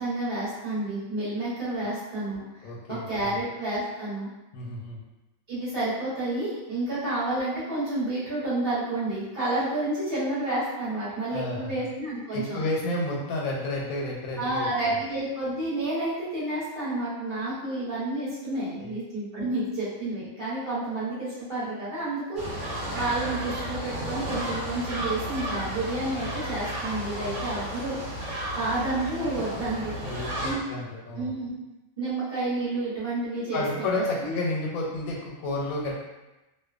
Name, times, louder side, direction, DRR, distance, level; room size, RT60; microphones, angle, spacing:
voice 1, 0.0-4.3 5.5-12.6 14.4-30.0 30.4-30.8 31.1-31.6 32.0-34.4, right 2 dB, 50° right, -10 dB, 1.1 m, -30 dB
voice 2, 2.6-3.4 4.5-5.0 11.3-11.9 12.3-15.0 18.7-19.0 19.4-19.5 30.0-31.3 33.5-36.0, left 2 dB, 85° left, -2 dB, 1.1 m, -31 dB
sound 1, 22.4-30.5, right 1 dB, 65° right, 1.0 m, -33 dB
2.6 x 2.1 x 2.3 m, 1.0 s
omnidirectional pair, 1.4 m